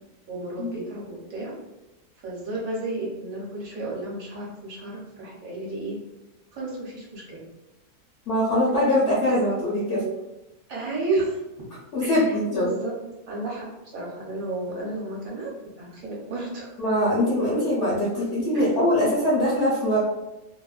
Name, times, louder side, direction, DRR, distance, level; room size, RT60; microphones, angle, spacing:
voice 1, 0.3-1.5 2.2-6.0 6.5-7.5 9.2-9.3 10.7-11.4 12.0-12.9 13.3-15.5 15.8-16.7 18.5-18.9, right 2 dB, 60° right, -4 dB, 1.1 m, -32 dB
voice 2, 8.3-10.0 11.9-12.7 16.8-20.0, left 1 dB, 60° left, -7 dB, 0.8 m, -22 dB
2.8 x 2.1 x 2.3 m, 1.0 s
omnidirectional pair, 1.8 m